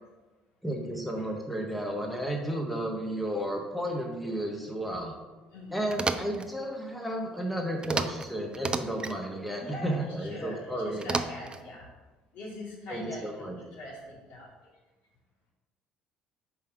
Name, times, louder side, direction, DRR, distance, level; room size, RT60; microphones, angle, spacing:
voice 1, 0.6-5.2 5.7-11.0 12.9-13.6, right 1 dB, ahead, 0 dB, 1.3 m, -33 dB
voice 2, 5.5-6.0 9.6-11.9 12.3-14.5, left 1 dB, 65° left, -3 dB, 2.4 m, -42 dB
es-staplers, 5.9-6.5 7.8-8.3 8.5-9.2 11.0-11.6, right 3 dB, 25° right, 0.6 m, -31 dB
5.4 x 4.8 x 5.9 m, 1.2 s
hypercardioid pair, 60°, 4 cm